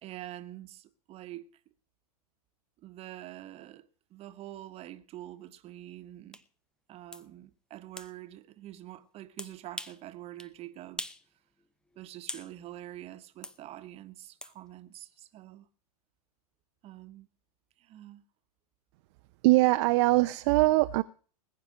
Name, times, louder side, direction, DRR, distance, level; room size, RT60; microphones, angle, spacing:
voice 1, 0.0-1.5 2.8-6.4 6.9-11.1 12.0-15.7 16.8-17.3 17.8-18.2, right 14 dB, 30° right, 1.2 m, -46 dB
sound 1, 6.3-6.4 7.1-7.3 8.0-8.1 9.4-10.0 10.4-10.5 11.0-11.2 11.6-12.5 13.4-13.6 14.4-14.5, left 1 dB, 5° left, 0.6 m, -41 dB
voice 2, 19.4-21.0, right 20 dB, 45° right, 0.6 m, -22 dB
20.0 x 9.0 x 5.1 m
hypercardioid pair, 110°, 20 cm